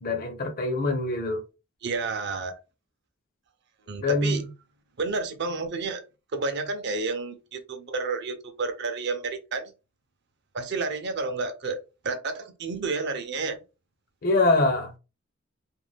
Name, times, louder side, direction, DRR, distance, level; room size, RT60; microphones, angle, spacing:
voice 1, 0.0-1.4 4.0-4.5 14.2-14.9, left 2 dB, 45° left, 0.6 m, -24 dB
voice 2, 1.8-2.6 3.9-4.5 5.0-6.0 6.3-9.7 10.5-11.8 12.0-13.6, right 3 dB, 55° right, 0.5 m, -30 dB
2.5 x 2.1 x 3.3 m
head